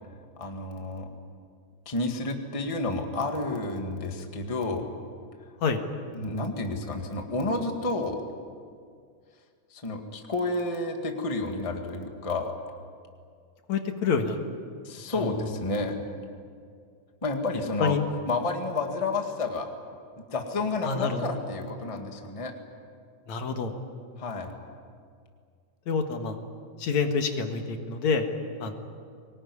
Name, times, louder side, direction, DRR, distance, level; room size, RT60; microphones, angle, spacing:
voice 1, 0.4-1.1 1.8-4.9 6.1-8.2 9.7-12.5 14.8-16.0 17.2-18.0 18.3-19.7 20.3-22.5 24.2-24.5, left 2 dB, 15° left, 3 dB, 1.5 m, -30 dB
voice 2, 13.7-14.4 15.2-15.5 17.8-18.0 20.8-21.3 23.3-23.8 25.9-26.4 26.8-28.2 28.6-28.7, left 5 dB, 70° left, 5 dB, 2.9 m, -27 dB
24.0 x 20.0 x 9.8 m, 2.2 s
omnidirectional pair, 3.3 m